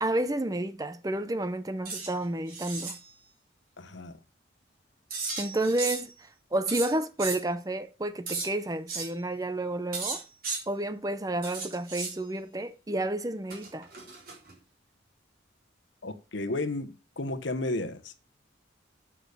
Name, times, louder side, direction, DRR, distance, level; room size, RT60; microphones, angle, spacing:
voice 1, 0.0-3.0 5.4-6.1 6.5-10.2 10.7-13.9, right 1 dB, 20° right, 0.6 m, -30 dB
sound 1, 1.8-2.1 2.5-3.0 5.1-6.1 6.7-7.4 8.3-8.5 8.9-9.1 9.9-10.6 11.4-12.2 13.5-14.5, right 4 dB, 50° right, 3.6 m, -35 dB
voice 2, 3.8-4.2 16.0-18.2, left 2 dB, 70° left, 1.1 m, -33 dB
8.5 x 6.1 x 6.8 m
head